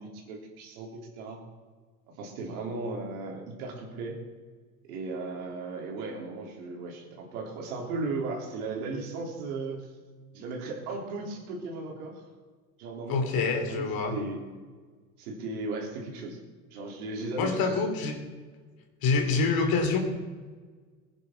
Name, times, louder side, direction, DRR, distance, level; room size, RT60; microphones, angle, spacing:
voice 1, 0.0-1.4 2.2-4.2 4.9-9.9 10.3-12.2 12.8-13.9 14.1-14.4 15.2-16.4 16.7-17.8, right 3 dB, 70° right, 0 dB, 3.8 m, -36 dB
voice 2, 13.1-14.2 17.4-18.2 19.0-20.0, left 4 dB, 50° left, 5 dB, 2.9 m, -26 dB
21.0 x 9.9 x 4.6 m, 1.5 s
hypercardioid pair, 75°, 45 cm